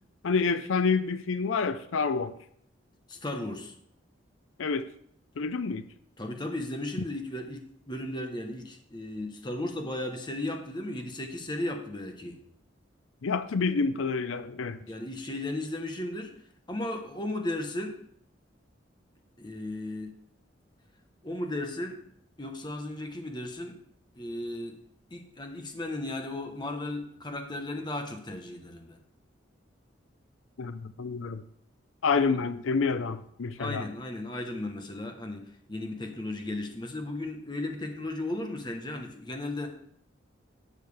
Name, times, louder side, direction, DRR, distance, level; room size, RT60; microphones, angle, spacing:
voice 1, 0.2-2.3 4.6-4.9 5.4-5.8 13.2-14.8 30.6-31.4 32.0-33.8, left 4 dB, 90° left, 0.5 m, -28 dB
voice 2, 3.1-3.7 6.2-12.4 14.9-16.3 16.7-18.0 19.4-20.1 21.2-22.0 22.4-23.7 24.2-24.8 25.1-29.0 33.6-39.7, left 1 dB, 25° left, 1.1 m, -35 dB
12.0 x 7.4 x 3.4 m
head